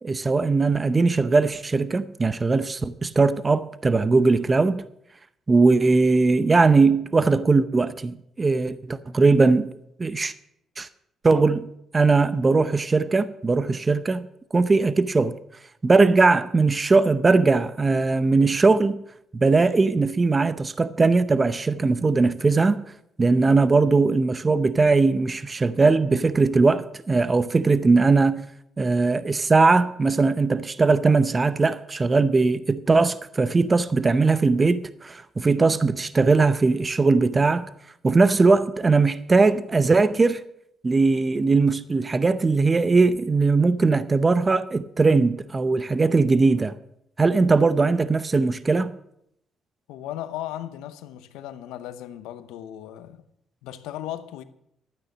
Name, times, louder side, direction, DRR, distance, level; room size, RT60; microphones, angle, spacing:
voice 1, 0.0-4.8 5.5-9.7 10.0-10.3 10.8-10.9 11.2-11.7 11.9-14.3 14.5-15.3 15.8-19.0 19.3-22.8 23.2-28.4 28.8-37.7 38.0-40.4 40.8-46.8 47.2-48.9, right 3 dB, 30° right, 0.7 m, -20 dB
voice 2, 49.9-53.2 53.6-54.4, left 12 dB, 90° left, 0.8 m, -36 dB
12.0 x 9.3 x 6.1 m
supercardioid pair, 65°, 0 cm